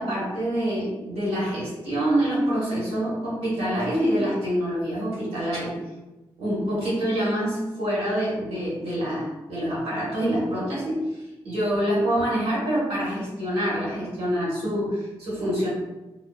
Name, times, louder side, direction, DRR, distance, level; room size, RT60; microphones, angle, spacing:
voice 1, 0.0-5.7 6.4-15.7, equal, 85° right, -7 dB, 1.1 m, -26 dB
2.6 x 2.1 x 2.2 m, 1.1 s
supercardioid pair, 45°, 10 cm